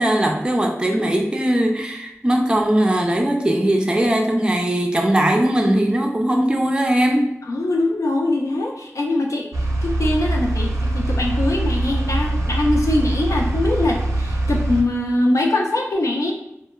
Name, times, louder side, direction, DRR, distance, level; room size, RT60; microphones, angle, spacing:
voice 1, 0.0-7.3, right 1 dB, 15° right, 1 dB, 0.4 m, -19 dB
voice 2, 7.4-16.3, left 2 dB, 80° left, 1 dB, 0.4 m, -22 dB
sound 1, 9.5-14.8, right 1 dB, 90° right, 0.5 m, -22 dB
3.0 x 2.1 x 2.2 m, 0.82 s
wide cardioid pair, 55°, 5 cm